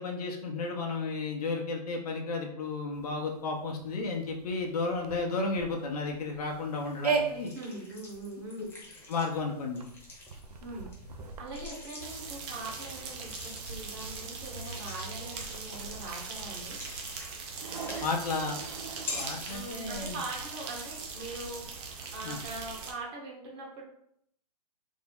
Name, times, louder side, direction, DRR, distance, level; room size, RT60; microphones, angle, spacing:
voice 1, 0.0-7.5 9.1-9.9 18.0-18.6 19.1-20.2 22.2-22.4, left 3 dB, 65° left, 1 dB, 0.8 m, -33 dB
sound 1, 2.9-22.4, right 5 dB, 75° right, 0.5 m, -41 dB
sound 2, 6.5-20.0, left 2 dB, 10° left, 0.9 m, -47 dB
voice 2, 7.3-8.7 10.6-10.9 11.4-16.8 19.5-23.8, right 2 dB, 40° right, -1 dB, 1.1 m, -42 dB
sound 3, 12.0-22.9, right 4 dB, 25° right, 0.5 m, -41 dB
3.6 x 2.0 x 3.5 m, 0.70 s
hypercardioid pair, 135°, 21 cm